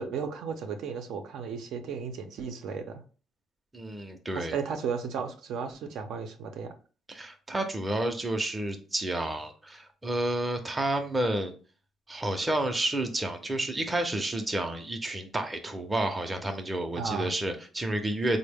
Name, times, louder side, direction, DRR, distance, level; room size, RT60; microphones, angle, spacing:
voice 1, 0.0-3.0 4.3-6.7 16.9-17.3, right 6 dB, 70° right, 5 dB, 0.5 m, -34 dB
voice 2, 3.7-4.5 7.1-11.5 12.1-18.4, right 1 dB, 15° right, 5 dB, 0.5 m, -30 dB
3.9 x 2.0 x 3.4 m, 0.37 s
cardioid pair, 130°, 0 cm